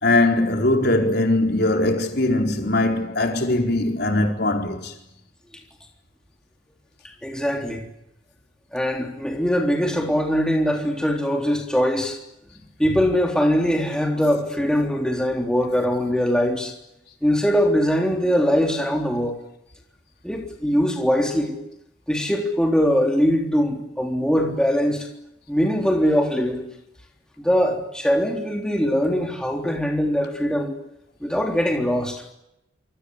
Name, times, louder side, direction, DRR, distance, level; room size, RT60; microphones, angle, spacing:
voice 1, 0.0-4.9 14.2-14.3, left 2 dB, 60° left, 4.3 m, -21 dB
voice 2, 7.2-7.8 8.7-12.2 12.8-16.7 17.2-19.3 20.2-21.6 22.1-25.1 25.5-26.7 27.4-30.8 31.2-32.2, equal, 5° left, 3.7 m, -22 dB
27.0 x 25.0 x 8.3 m
head